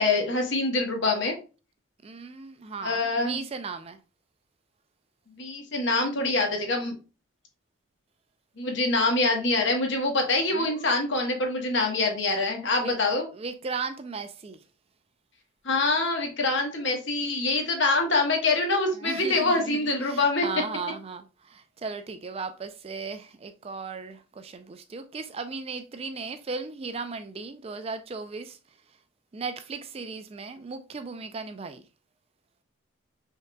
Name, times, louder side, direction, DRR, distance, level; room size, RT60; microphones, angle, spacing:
voice 1, 0.0-1.3 2.8-3.4 5.4-6.9 8.6-13.3 15.6-20.5, left 3 dB, 55° left, 1.2 m, -25 dB
voice 2, 2.0-4.0 10.5-10.9 12.8-12.9 13.3-14.6 19.0-28.6 29.3-31.8, right 4 dB, 30° right, 0.3 m, -36 dB
5.3 x 3.8 x 2.2 m
head